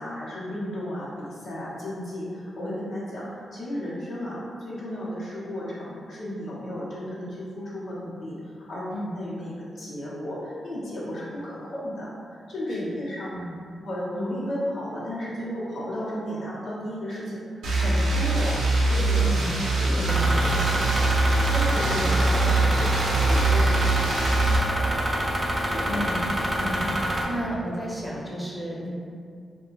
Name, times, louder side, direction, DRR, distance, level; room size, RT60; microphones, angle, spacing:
voice 1, 0.0-8.8 9.1-13.3 13.8-18.5 18.9-19.3 19.8-22.9 23.2-25.3 25.7-26.0 26.7-26.9, equal, 70° left, -9 dB, 0.8 m, -34 dB
sound 1, 17.6-24.6, right 3 dB, 90° right, 0.4 m, -23 dB
voice 2, 19.2-19.6 19.9-20.7 22.0-22.2 25.9-28.9, equal, ahead, -6 dB, 0.8 m, -33 dB
sound 2, 20.1-27.2, right 1 dB, 30° right, 0.5 m, -27 dB
2.3 x 2.2 x 3.1 m, 2.3 s
supercardioid pair, 45°, 0 cm